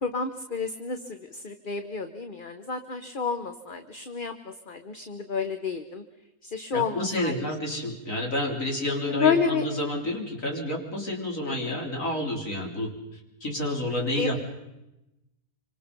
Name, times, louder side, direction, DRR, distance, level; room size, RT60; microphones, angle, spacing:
voice 1, 0.0-4.3 4.7-6.0 6.4-7.3 9.1-9.6 11.5-11.8 14.1-14.4, left 5 dB, 35° left, 8 dB, 1.1 m, -30 dB
voice 2, 6.7-14.4, left 1 dB, 60° left, 1 dB, 4.3 m, -30 dB
26.0 x 26.0 x 5.4 m, 0.93 s
omnidirectional pair, 1.6 m